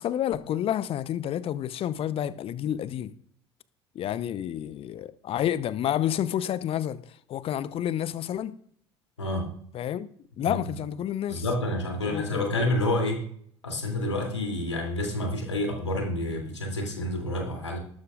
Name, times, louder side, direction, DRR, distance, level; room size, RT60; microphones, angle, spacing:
voice 1, 0.0-3.1 3.9-8.6 9.7-10.1 10.4-11.4 12.0-12.4, left 11 dB, 40° left, 0.8 m, -29 dB
voice 2, 9.2-9.5 10.4-10.6 11.3-13.2 13.6-17.8, left 1 dB, 85° left, 3.0 m, -28 dB
19.0 x 12.5 x 2.5 m
figure-of-eight pair, 65°, 15 cm